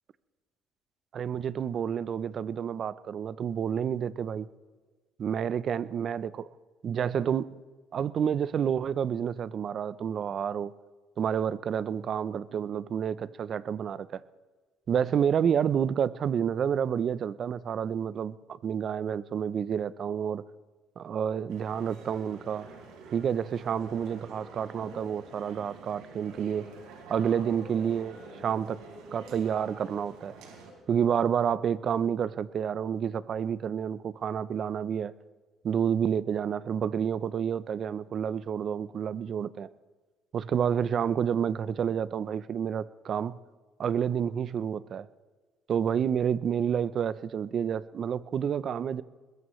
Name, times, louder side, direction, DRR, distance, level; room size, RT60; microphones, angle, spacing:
voice 1, 1.1-4.5 5.2-6.3 6.8-7.5 7.9-10.7 11.2-14.2 14.9-20.4 21.0-22.7 23.1-26.7 27.1-28.8 29.1-30.3 30.9-35.1 35.6-39.7 40.3-43.4 43.8-45.1 45.7-49.0, right 8 dB, 50° right, 17 dB, 0.6 m, -29 dB
sound 1, 21.5-30.7, right 3 dB, 90° right, 4.2 m, -47 dB
21.5 x 21.0 x 3.2 m, 1.3 s
cardioid pair, 90°, 0 cm